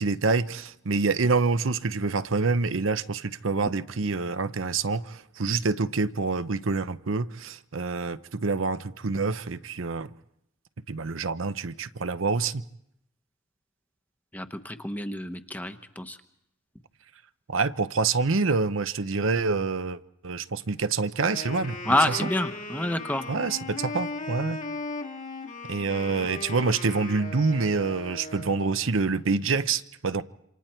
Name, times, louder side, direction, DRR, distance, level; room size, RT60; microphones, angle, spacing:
voice 1, 0.0-10.1 10.9-12.6 17.5-22.3 23.3-24.6 25.7-30.2, right 4 dB, 75° right, 0.8 m, -27 dB
voice 2, 14.3-16.2 21.9-23.3, left 1 dB, 10° left, 1.1 m, -28 dB
Wind instrument woodwind instrument, 21.1-28.8, left 3 dB, 40° left, 2.1 m, -37 dB
28.0 x 26.5 x 4.5 m
head